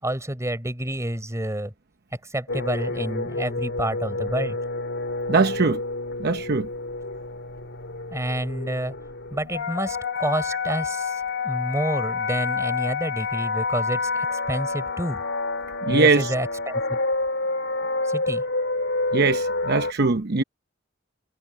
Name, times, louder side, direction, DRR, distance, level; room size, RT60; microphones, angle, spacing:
voice 1, 0.0-1.7 2.3-4.6 8.1-8.9 9.3-15.2 15.9-17.0 18.0-18.4, right 1 dB, 15° right, 4.6 m, -29 dB
sound 1, 2.5-19.9, left 3 dB, 65° left, 4.1 m, -28 dB
voice 2, 5.3-5.8 6.2-6.7 15.9-16.3 19.1-20.4, right 4 dB, 55° right, 0.8 m, -21 dB
head